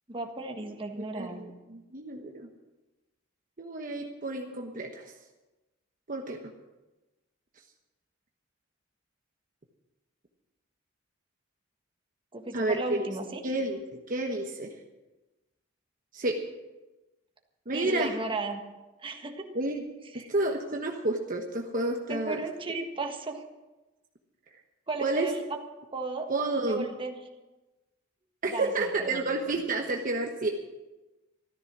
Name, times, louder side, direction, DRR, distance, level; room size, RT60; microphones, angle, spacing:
voice 1, 0.1-1.4 12.3-13.4 17.7-18.6 19.0-19.5 20.1-20.3 22.1-23.4 24.9-25.4 25.9-26.3 26.6-27.1 28.5-29.2, right 3 dB, 25° right, 3 dB, 1.5 m, -35 dB
voice 2, 1.0-2.5 3.6-5.1 6.1-6.4 12.5-12.8 13.4-14.7 16.1-16.4 17.7-18.1 19.5-19.8 20.1-22.4 25.0-25.3 26.3-26.9 28.4-30.5, right 2 dB, 45° right, 2 dB, 1.2 m, -30 dB
13.5 x 13.5 x 6.1 m, 1.1 s
head